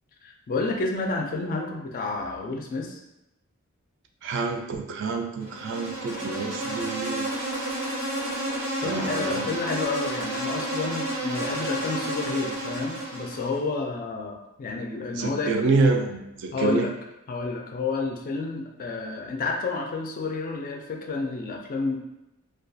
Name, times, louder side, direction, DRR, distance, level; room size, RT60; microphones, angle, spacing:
voice 1, 0.2-3.0 8.8-15.5 16.5-16.9 17.3-22.0, left 3 dB, 40° left, 2 dB, 0.3 m, -30 dB
voice 2, 4.2-7.2 8.8-9.5 15.1-16.9, right 3 dB, 60° right, 4 dB, 0.3 m, -27 dB
Insect, 5.4-13.6, right 1 dB, 75° right, 0.7 m, -31 dB
2.3 x 2.2 x 2.6 m, 0.89 s
head